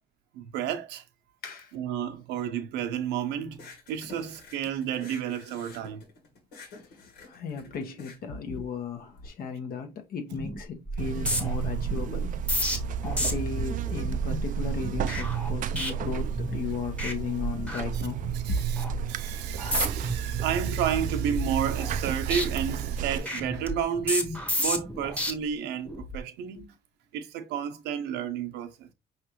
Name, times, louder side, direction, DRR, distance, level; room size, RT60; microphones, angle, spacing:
voice 1, 0.3-1.0 1.7-3.6 3.9-6.0 17.9-18.0 18.3-26.7 27.1-28.9, right 8 dB, 90° right, 0.8 m, -31 dB
voice 2, 1.4-1.7 6.7-18.2 18.5-18.6 19.5-19.6 26.6-26.7, left 5 dB, 60° left, 1.3 m, -36 dB
sound 1, 3.5-9.3, left 3 dB, 85° left, 2.0 m, -49 dB
sound 2, 10.3-10.6 10.9-16.6 16.9-17.1 17.4-18.4 18.8-19.0 19.6-20.1 20.5-22.0 22.3-25.3 25.9-26.2, equal, 10° left, 1.1 m, -32 dB
Buzz, 11.0-23.2, right 8 dB, 50° right, 0.4 m, -31 dB
5.2 x 3.2 x 3.0 m
cardioid pair, 110°, 17 cm